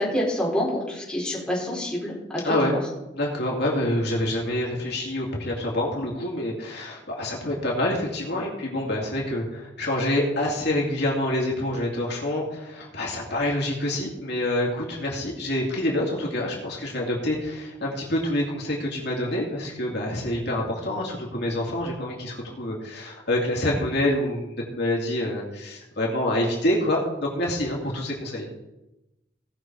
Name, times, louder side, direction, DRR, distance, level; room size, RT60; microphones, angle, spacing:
voice 1, 0.0-2.1 2.7-2.8, left 1 dB, 5° left, -5 dB, 4.0 m, -27 dB
voice 2, 2.4-2.8 3.1-28.5, left 1 dB, 65° left, -3 dB, 2.7 m, -27 dB
17.5 x 6.2 x 4.6 m, 0.95 s
head